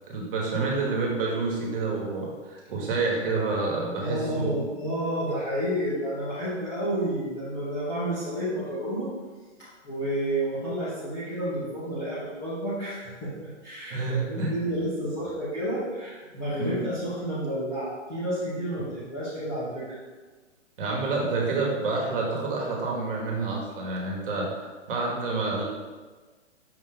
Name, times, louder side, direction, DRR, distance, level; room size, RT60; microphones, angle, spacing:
voice 1, 0.1-4.5 13.9-14.5 16.5-16.8 20.8-24.5 24.9-25.6, right 3 dB, 45° right, -2 dB, 1.2 m, -28 dB
voice 2, 4.0-9.1 9.6-20.0, right 1 dB, 10° left, -11 dB, 0.5 m, -30 dB
5.8 x 2.5 x 3.7 m, 1.3 s
hypercardioid pair, 155°, 37 cm